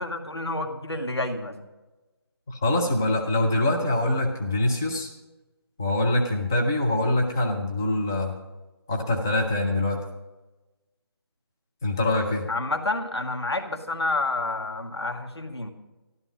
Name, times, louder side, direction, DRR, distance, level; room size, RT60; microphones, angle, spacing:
voice 1, 0.0-1.6 12.5-15.7, left 2 dB, 80° left, 4 dB, 1.9 m, -29 dB
voice 2, 2.5-5.1 5.8-8.3 8.9-10.0 11.8-12.5, left 2 dB, 5° left, 0 dB, 0.3 m, -24 dB
13.0 x 12.0 x 5.2 m, 1.1 s
figure-of-eight pair, 155°, 13 cm